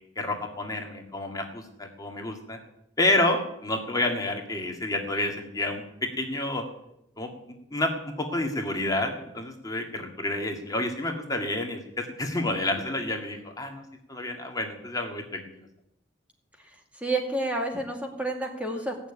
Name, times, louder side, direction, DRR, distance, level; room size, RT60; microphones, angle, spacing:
voice 1, 0.2-2.6 3.0-5.8 6.2-6.6 7.2-7.9 8.2-13.8 14.1-15.4, left 2 dB, 20° left, 3 dB, 2.1 m, -29 dB
voice 2, 17.0-19.1, right 2 dB, 5° right, 2 dB, 2.1 m, -29 dB
17.5 x 7.2 x 9.8 m, 0.84 s
head